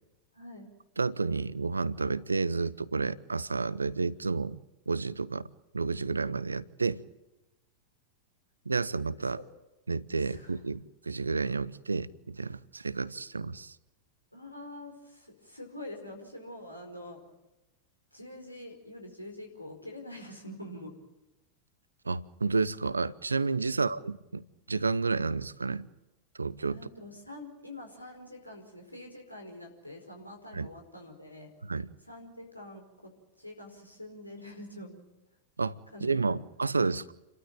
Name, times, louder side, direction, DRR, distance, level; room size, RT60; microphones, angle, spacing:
voice 1, 0.3-0.7 9.2-9.4 10.2-10.6 14.3-17.2 18.1-20.9 23.6-23.9 26.7-31.5 32.0-33.1 33.4-35.0 35.9-36.4, left 1 dB, 90° left, 4.8 m, -45 dB
voice 2, 1.0-4.6 4.9-5.5 5.7-7.0 8.7-9.4 9.9-13.7 22.1-25.9 26.4-26.8 30.5-30.7 31.6-31.9 35.6-37.1, right 4 dB, 80° right, 0.7 m, -31 dB
29.0 x 13.5 x 9.1 m
figure-of-eight pair, 90°, 0 cm